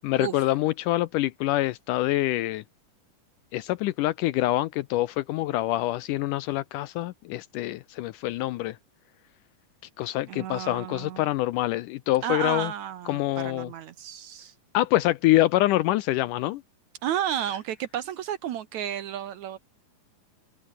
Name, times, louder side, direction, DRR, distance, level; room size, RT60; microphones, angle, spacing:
voice 1, 0.0-2.6 3.5-8.8 10.0-12.7 13.1-13.7 14.7-16.6, left 16 dB, 75° left, 2.0 m, -25 dB
voice 2, 10.3-11.2 12.2-14.5 17.0-19.6, right 10 dB, 65° right, 2.0 m, -32 dB
open air
omnidirectional pair, 4.1 m